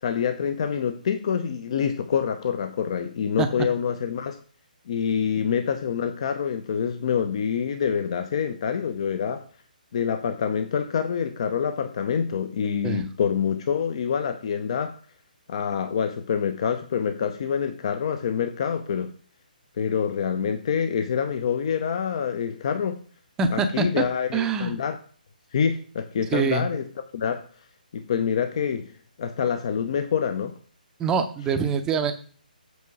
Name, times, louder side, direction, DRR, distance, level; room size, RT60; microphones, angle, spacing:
voice 1, 0.0-4.4 4.9-9.4 9.9-14.9 15.5-19.1 19.8-23.0 23.5-25.0 25.5-26.8 27.1-27.4 27.9-28.9 29.2-30.6, left 7 dB, 40° left, 8 dB, 0.7 m, -26 dB
voice 2, 23.4-24.0 24.3-24.7 26.3-26.7 31.0-32.1, right 5 dB, 10° right, 8 dB, 0.7 m, -24 dB
8.2 x 4.6 x 4.7 m, 0.44 s
figure-of-eight pair, 140°, 5 cm